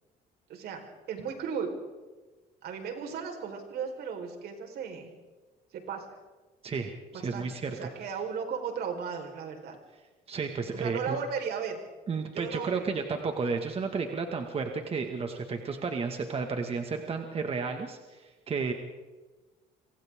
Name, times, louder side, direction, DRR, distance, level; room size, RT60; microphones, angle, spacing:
voice 1, 0.5-0.8 1.1-1.7 2.6-5.1 5.7-6.1 7.1-9.8 10.7-11.8 12.3-12.8, right 6 dB, 70° right, 3 dB, 4.6 m, -35 dB
voice 2, 6.6-7.9 10.3-11.2 12.1-18.7, right 4 dB, 35° right, 4 dB, 1.9 m, -32 dB
27.5 x 25.0 x 3.8 m, 1.2 s
cardioid pair, 110°, 17 cm